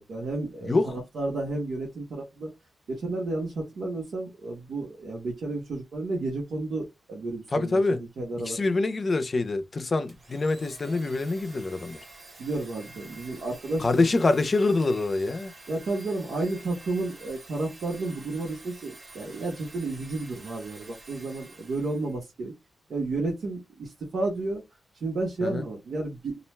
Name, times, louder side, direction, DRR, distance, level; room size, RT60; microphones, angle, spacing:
voice 1, 0.0-2.5 2.9-7.8 8.2-8.8 12.4-14.1 15.7-22.5 22.9-24.6 24.9-26.4, right 2 dB, 75° right, 1.0 m, -32 dB
voice 2, 0.6-0.9 7.5-8.0 8.4-12.0 13.8-15.5 25.4-25.6, left 3 dB, 40° left, 0.5 m, -25 dB
Domestic sounds home sounds, 10.1-22.2, right 2 dB, 40° right, 0.9 m, -49 dB
2.4 x 2.2 x 3.1 m
wide cardioid pair, 115°, 0 cm